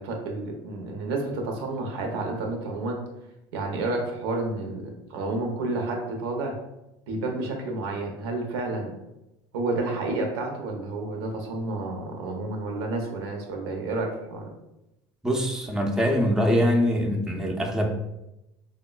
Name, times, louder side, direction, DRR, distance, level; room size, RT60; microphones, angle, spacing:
voice 1, 0.0-3.0 3.5-6.6 7.1-9.0 9.5-14.5, right 2 dB, 80° right, 2 dB, 0.6 m, -30 dB
voice 2, 15.2-17.9, equal, 5° right, 1 dB, 0.5 m, -23 dB
3.5 x 2.1 x 2.3 m, 0.91 s
hypercardioid pair, 80°, 13 cm